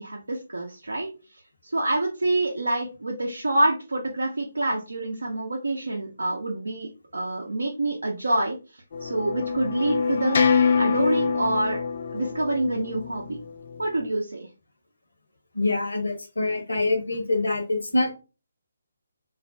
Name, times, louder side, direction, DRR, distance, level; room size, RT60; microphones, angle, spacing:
voice 1, 0.0-10.4 10.8-11.8 12.1-13.4 13.8-14.5, right 2 dB, 75° right, -1 dB, 0.5 m, -27 dB
sound 1, 8.9-14.0, left 5 dB, 50° left, 0.3 m, -25 dB
voice 2, 15.5-18.1, left 2 dB, 75° left, 4 dB, 0.8 m, -25 dB
2.4 x 2.0 x 2.6 m, 0.31 s
figure-of-eight pair, 145°, 0 cm